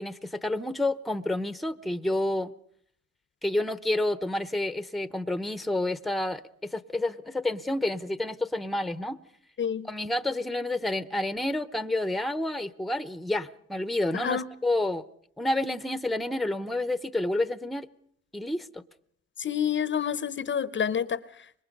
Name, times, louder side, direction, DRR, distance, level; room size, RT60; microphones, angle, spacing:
voice 1, 0.0-2.5 3.4-9.2 9.8-15.0 15.4-17.9 18.3-18.8, left 1 dB, ahead, 0.8 m, -29 dB
voice 2, 14.1-14.4 19.4-21.2, left 8 dB, 40° left, 0.7 m, -28 dB
25.0 x 21.5 x 5.3 m
cardioid pair, 90°, 30 cm